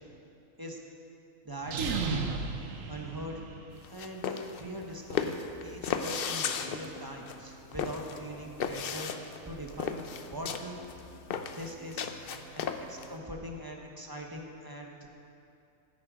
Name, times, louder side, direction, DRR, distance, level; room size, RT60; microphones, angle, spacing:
voice 1, 1.4-2.3 2.9-3.4 3.9-10.8 11.5-12.1 12.5-15.1, equal, 20° right, 0 dB, 1.0 m, -42 dB
sound 1, 1.6-3.8, right 5 dB, 70° right, 1.2 m, -34 dB
sound 2, 3.8-13.1, left 6 dB, 55° left, 0.7 m, -35 dB
sound 3, 5.0-13.2, right 2 dB, 90° right, 1.8 m, -54 dB
14.5 x 8.5 x 5.1 m, 2.6 s
omnidirectional pair, 1.4 m